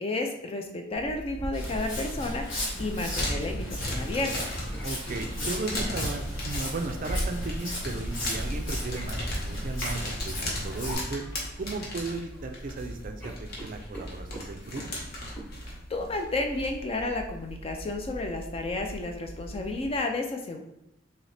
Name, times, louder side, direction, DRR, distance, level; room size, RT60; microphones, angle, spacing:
voice 1, 0.0-4.5 15.9-20.6, left 2 dB, 30° left, 4 dB, 0.4 m, -32 dB
sound 1, 0.9-20.0, equal, 50° left, 1.0 m, -37 dB
Walk footsteps, 1.5-10.9, equal, 75° left, 1.5 m, -35 dB
sound 2, 4.7-6.0 7.0-7.3 8.9-9.1 11.1-11.4 11.8-12.4 12.7-12.9 13.2-14.9 15.4-15.5, right 1 dB, 5° left, 1.0 m, -44 dB
voice 2, 4.8-11.2 11.6-15.0, right 3 dB, 40° right, 5 dB, 0.4 m, -36 dB
4.0 x 2.8 x 3.3 m, 0.84 s
head